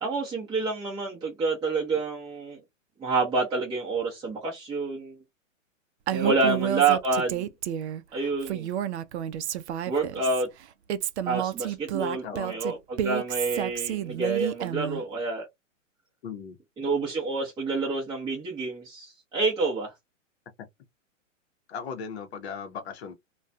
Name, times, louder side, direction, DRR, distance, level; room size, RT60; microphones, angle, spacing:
voice 1, 0.0-2.6 3.0-5.2 6.1-7.5 8.1-8.7 9.9-10.5 11.3-15.4 16.8-19.9, right 3 dB, 10° right, 0.6 m, -28 dB
Female speech woman speaking, 6.1-8.0 8.4-10.4 10.9-15.0, right 10 dB, 60° right, 0.5 m, -30 dB
voice 2, 6.2-6.7 12.2-12.6 16.2-16.6 21.7-23.1, left 6 dB, 55° left, 0.7 m, -37 dB
2.3 x 2.2 x 2.5 m
hypercardioid pair, 125°, 39 cm